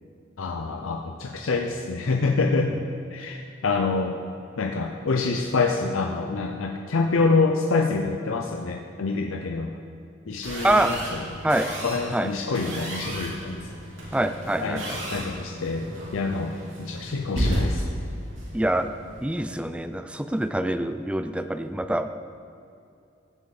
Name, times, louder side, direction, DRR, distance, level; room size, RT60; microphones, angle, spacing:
voice 1, 0.4-2.7 3.1-4.2 4.6-9.7 10.3-11.2 11.8-13.6 14.6-17.8, left 3 dB, 85° left, 3 dB, 0.6 m, -26 dB
sound 1, 10.4-19.5, equal, 75° right, 3.2 m, -33 dB
voice 2, 14.1-14.8 18.5-18.9 19.2-22.1, right 1 dB, 5° right, 9 dB, 0.3 m, -25 dB
15.0 x 8.1 x 4.2 m, 2.5 s
head